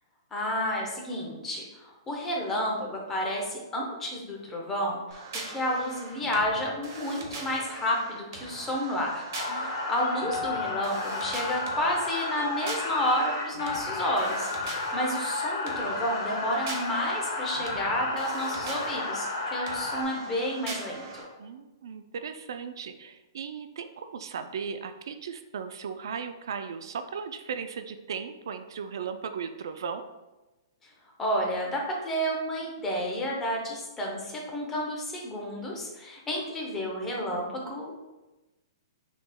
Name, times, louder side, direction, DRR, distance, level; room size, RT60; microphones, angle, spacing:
voice 1, 0.3-5.0 5.5-19.3 19.5-21.2 30.8-30.9 31.2-38.0, equal, 10° left, -1 dB, 0.6 m, -31 dB
sound 1, 5.1-21.2, right 3 dB, 45° right, 0.9 m, -42 dB
sound 2, 9.3-20.0, left 3 dB, 70° left, 1.3 m, -32 dB
voice 2, 21.4-30.0, right 6 dB, 65° right, 9 dB, 0.3 m, -37 dB
6.9 x 3.4 x 2.2 m, 1.1 s
hypercardioid pair, 175°, 2 cm